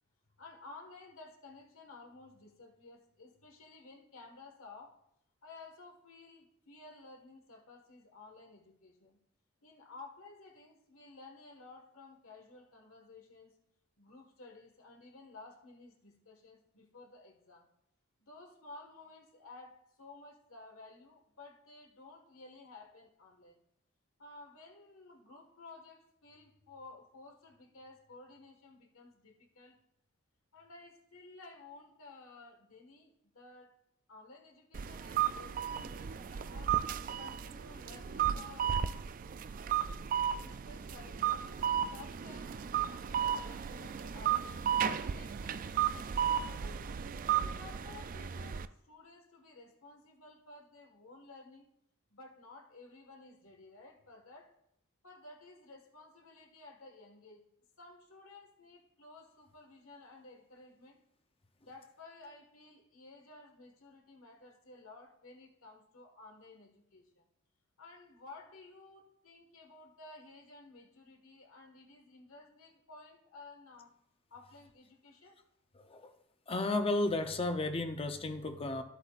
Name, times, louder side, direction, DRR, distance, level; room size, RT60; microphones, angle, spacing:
voice 1, 0.4-4.9 5.4-9.2 9.6-13.5 14.0-17.7 18.2-23.6 24.2-29.8 30.5-33.8 34.1-36.7 37.1-38.7 40.3-44.6 45.0-47.0 47.3-51.7 52.1-54.5 55.0-57.4 57.8-61.0 61.7-67.2 67.8-74.0 74.3-75.4, left 3 dB, 80° left, 2 dB, 1.6 m, -54 dB
sound 1, 34.7-48.7, right 9 dB, 40° right, 0.3 m, -34 dB
voice 2, 75.8-76.1 76.5-78.8, left 2 dB, 25° left, 7 dB, 0.6 m, -33 dB
13.0 x 8.0 x 2.5 m, 0.79 s
head